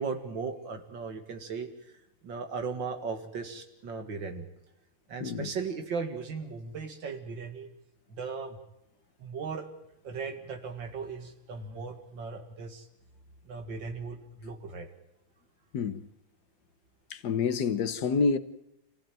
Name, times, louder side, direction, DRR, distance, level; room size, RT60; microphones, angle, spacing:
voice 1, 0.0-1.7 2.2-4.5 5.1-7.7 8.1-8.6 9.2-9.7 10.0-12.9 13.4-14.9, right 5 dB, 75° right, 2.6 m, -37 dB
voice 2, 5.2-5.5 15.7-16.0 17.1-18.4, left 5 dB, 65° left, 1.5 m, -28 dB
26.0 x 15.5 x 9.1 m
omnidirectional pair, 2.0 m